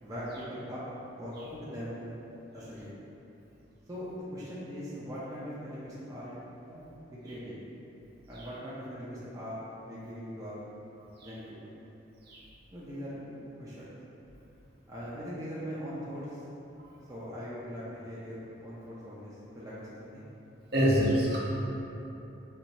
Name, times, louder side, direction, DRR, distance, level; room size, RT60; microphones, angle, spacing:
voice 1, 0.0-0.8 1.2-2.2 2.5-2.9 3.9-6.4 6.7-7.6 8.3-10.6 11.2-11.7 12.7-13.9 14.9-16.4 17.1-20.2, equal, 20° right, -9 dB, 0.5 m, -41 dB
voice 2, 20.7-21.4, equal, 55° right, -6 dB, 0.9 m, -25 dB
4.5 x 2.7 x 4.0 m, 2.9 s
head